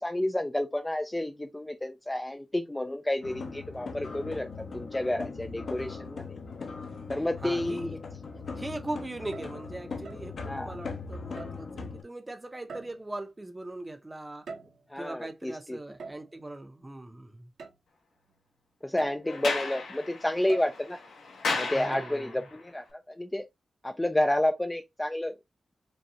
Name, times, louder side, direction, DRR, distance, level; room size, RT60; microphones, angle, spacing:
voice 1, 0.0-6.3 7.1-8.0 10.5-10.8 14.9-15.8 18.8-21.0 21.6-23.5 23.8-25.3, left 1 dB, 10° left, 0.4 m, -30 dB
sound 1, 3.2-12.0, left 4 dB, 60° left, 0.9 m, -40 dB
voice 2, 7.4-8.0 8.6-14.4 15.0-17.5 21.7-22.4, right 2 dB, 15° right, 0.7 m, -40 dB
sound 2, 9.2-9.6 10.0-10.3 11.4-11.7 12.7-13.2 14.2-15.0 16.0-16.4 17.6-17.8 18.3-18.4 19.0-19.3 20.5-20.9 21.9-22.1, right 4 dB, 80° right, 1.4 m, -43 dB
Sliding door, 19.2-22.5, left 3 dB, 90° left, 1.2 m, -34 dB
5.3 x 2.3 x 2.7 m
wide cardioid pair, 125°, 0 cm